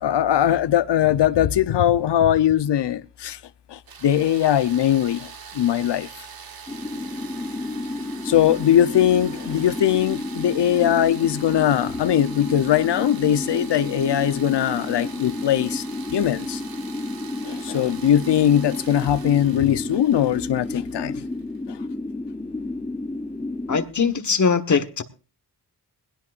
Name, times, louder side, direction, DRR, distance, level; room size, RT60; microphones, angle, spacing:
voice 1, 0.0-3.4 3.7-6.1 8.2-15.8 16.1-16.6 17.4-21.2 21.7-21.8, left 11 dB, 80° left, 0.9 m, -20 dB
sound 1, 3.9-21.6, right 6 dB, 60° right, 1.4 m, -43 dB
sound 2, 6.7-23.9, left 2 dB, 10° left, 0.9 m, -31 dB
voice 2, 23.7-25.0, left 5 dB, 45° left, 1.5 m, -21 dB
20.5 x 17.0 x 2.6 m
cardioid pair, 90°, 41 cm